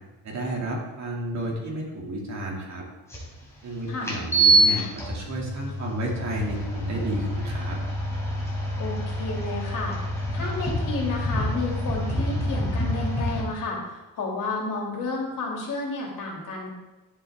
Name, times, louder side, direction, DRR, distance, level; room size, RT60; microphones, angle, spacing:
voice 1, 0.2-2.9 3.6-7.8, right 1 dB, 50° right, -2 dB, 2.9 m, -32 dB
sound 1, 3.1-3.2 4.0-13.4, right 1 dB, 10° left, 3.7 m, -26 dB
voice 2, 8.8-10.0 10.3-16.7, left 3 dB, 60° left, -1 dB, 3.1 m, -31 dB
11.0 x 10.5 x 3.8 m, 1.1 s
cardioid pair, 155°, 35 cm